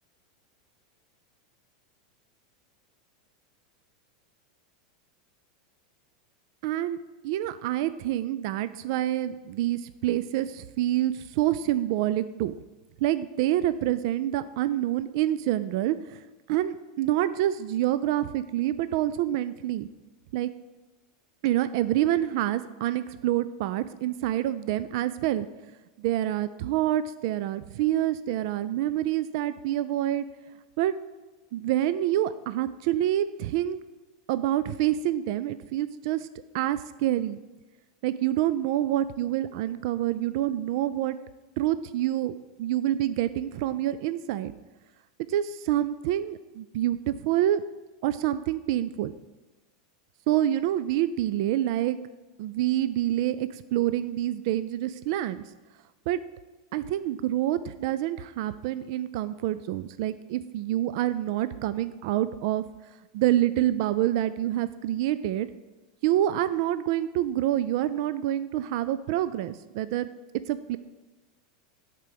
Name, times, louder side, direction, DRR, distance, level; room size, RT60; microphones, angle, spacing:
voice 1, 6.6-7.0 7.2-12.5 13.0-16.2 16.5-19.9 20.3-20.5 21.4-25.5 26.0-30.2 30.8-30.9 31.5-33.8 34.3-36.3 36.5-37.4 38.0-41.2 41.6-44.5 45.3-47.6 48.0-49.1 50.3-52.0 52.4-55.4 56.1-56.2 56.7-62.6 63.1-65.5 66.0-70.1 70.5-70.8, right 13 dB, 55° right, 14 dB, 0.3 m, -27 dB
10.5 x 4.4 x 5.2 m, 1.1 s
supercardioid pair, 160°, 3 cm